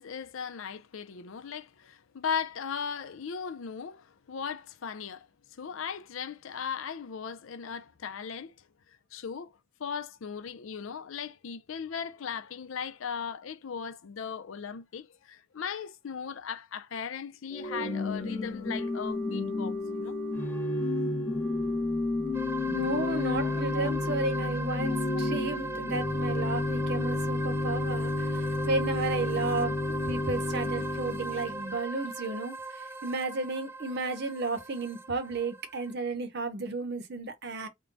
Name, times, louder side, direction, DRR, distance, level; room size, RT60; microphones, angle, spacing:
voice 1, 0.0-5.3 5.6-8.5 9.1-9.5 9.8-20.2 23.2-23.9, left 6 dB, 75° left, 0.5 m, -38 dB
Organ / Church bell, 17.5-31.7, left 2 dB, 10° left, 0.7 m, -31 dB
sound 1, 22.3-35.9, right 2 dB, 10° right, 0.3 m, -39 dB
voice 2, 22.7-32.6 33.0-37.7, right 3 dB, 50° right, 0.8 m, -33 dB
3.7 x 2.2 x 3.8 m
head